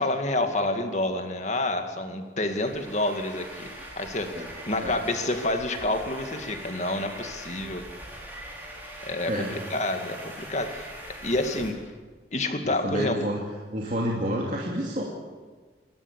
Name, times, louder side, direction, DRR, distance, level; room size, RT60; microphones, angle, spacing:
voice 1, 0.0-3.7 4.0-7.8 9.0-10.9 11.2-11.8 12.3-13.2, left 2 dB, 40° left, 5 dB, 2.2 m, -28 dB
sound 1, 2.5-11.7, right 1 dB, 10° right, 4.4 m, -42 dB
voice 2, 12.6-13.4 13.7-15.0, equal, 45° right, -3 dB, 2.8 m, -29 dB
28.0 x 13.0 x 8.3 m, 1.4 s
head